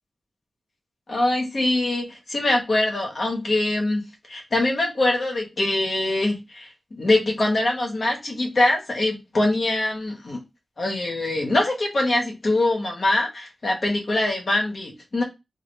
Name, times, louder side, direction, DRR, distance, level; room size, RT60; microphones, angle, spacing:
voice 1, 1.1-10.4 10.8-15.2, left 2 dB, 55° left, 1.1 m, -23 dB
2.7 x 2.7 x 3.1 m
wide cardioid pair, 80°, 0 cm